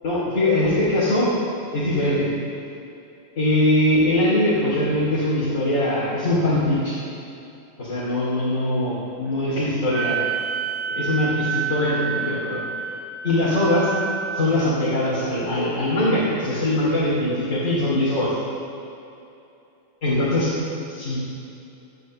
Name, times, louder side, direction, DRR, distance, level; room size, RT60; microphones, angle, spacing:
voice 1, 0.0-1.3 1.7-2.3 3.4-7.0 7.8-10.2 10.9-12.6 13.2-13.9 14.3-18.3 20.0-20.5 20.9-21.4, left 1 dB, 85° left, -10 dB, 3.2 m, -22 dB
Wind instrument woodwind instrument, 9.9-14.6, right 6 dB, 70° right, 0.4 m, -29 dB
16.5 x 11.0 x 3.1 m, 2.8 s
omnidirectional pair, 1.3 m